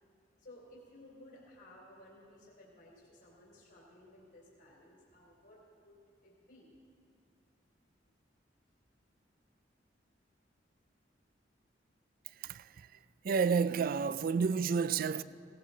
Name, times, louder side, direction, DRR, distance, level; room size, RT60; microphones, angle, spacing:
voice 1, 0.4-5.9 6.2-6.7, left 1 dB, 65° left, 3.2 m, -57 dB
voice 2, 12.3-13.0 13.2-15.2, right 5 dB, 50° right, 0.4 m, -31 dB
18.0 x 17.5 x 3.9 m
head